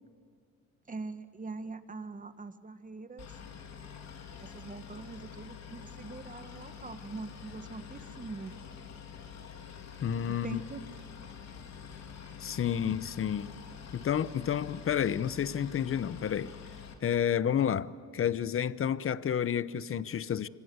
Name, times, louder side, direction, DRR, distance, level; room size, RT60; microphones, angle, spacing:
voice 1, 0.9-3.3 4.4-8.5 10.3-10.8, right 3 dB, 25° right, 1.7 m, -43 dB
Boat Water vehicle, 3.2-16.9, left 7 dB, 60° left, 3.4 m, -47 dB
voice 2, 10.0-10.6 12.4-13.5 13.9-16.5 17.0-20.5, left 9 dB, 45° left, 0.9 m, -30 dB
25.5 x 25.5 x 8.0 m
cardioid pair, 90°, 30 cm